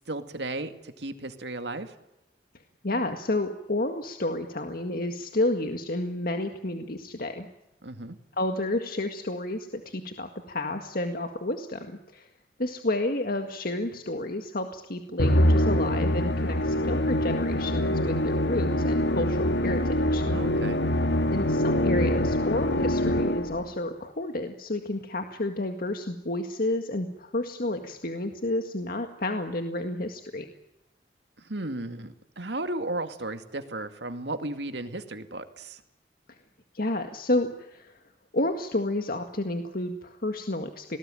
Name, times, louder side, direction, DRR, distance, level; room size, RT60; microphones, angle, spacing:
voice 1, 0.1-1.9 7.8-8.2 20.3-20.8 31.4-35.8, right 2 dB, 75° right, 8 dB, 2.3 m, -35 dB
voice 2, 2.8-7.5 8.4-12.3 12.6-20.2 21.3-30.5 36.7-37.9 38.3-41.0, left 1 dB, 55° left, 5 dB, 1.9 m, -30 dB
Musical instrument, 15.2-23.7, left 1 dB, 75° left, 1.5 m, -24 dB
26.5 x 19.5 x 9.2 m, 0.90 s
head